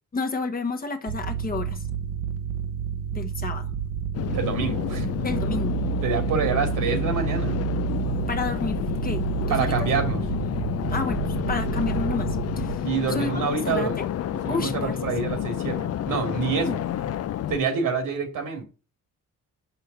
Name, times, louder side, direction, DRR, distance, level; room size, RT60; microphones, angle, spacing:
voice 1, 0.1-1.8 3.1-3.7 5.2-5.8 8.3-9.9 10.9-12.8 13.1-14.1 14.5-15.0 16.6-16.8, left 4 dB, 25° left, 1.1 m, -31 dB
sound 1, 1.1-12.8, right 9 dB, 45° right, 0.9 m, -30 dB
sound 2, 4.1-17.6, left 10 dB, 50° left, 0.5 m, -29 dB
voice 2, 4.3-5.1 6.0-7.6 9.5-10.2 12.8-14.0 14.4-16.8 17.5-18.6, right 5 dB, 75° right, 2.6 m, -27 dB
5.8 x 5.4 x 6.7 m
cardioid pair, 100°, 33 cm